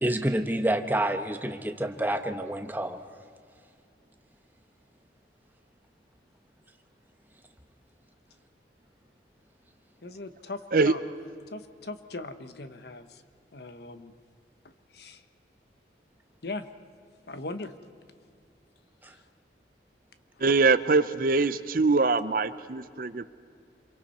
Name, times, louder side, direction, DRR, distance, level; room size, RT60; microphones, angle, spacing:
voice 1, 0.0-3.0 19.0-19.1, right 1 dB, 10° right, 7 dB, 0.9 m, -28 dB
voice 2, 10.0-11.0 11.5-13.2 13.5-14.1 14.9-15.2 16.4-16.7 17.3-17.7 19.1-19.2, left 2 dB, 60° left, 10 dB, 1.0 m, -39 dB
voice 3, 20.4-23.3, right 4 dB, 50° right, 13 dB, 0.6 m, -23 dB
27.0 x 23.5 x 4.3 m, 2.3 s
head